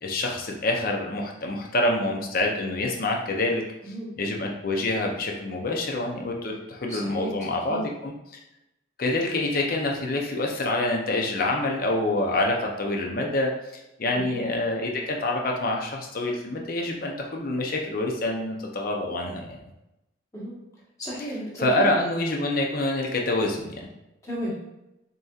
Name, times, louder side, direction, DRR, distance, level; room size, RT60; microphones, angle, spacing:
voice 1, 0.0-3.6 4.2-8.1 9.0-13.5 14.0-19.6 21.6-23.9, left 2 dB, 50° left, 0 dB, 0.7 m, -26 dB
voice 2, 6.9-7.3 7.7-7.9 14.1-14.5 20.3-20.6 21.0-21.8 24.2-24.5, equal, 15° left, -6 dB, 1.3 m, -33 dB
6.6 x 2.8 x 2.4 m, 0.91 s
head